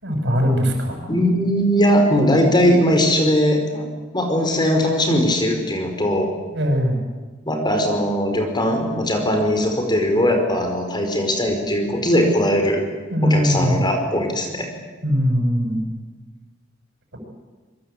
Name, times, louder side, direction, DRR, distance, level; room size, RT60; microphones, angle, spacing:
voice 1, 0.0-1.0 6.5-7.0 13.1-13.8 15.0-15.8, equal, 65° right, 3 dB, 7.0 m, -20 dB
voice 2, 1.1-3.9 4.1-6.3 7.5-12.8 13.2-14.7, equal, 25° left, 4 dB, 4.8 m, -19 dB
26.5 x 23.5 x 8.4 m, 1.3 s
head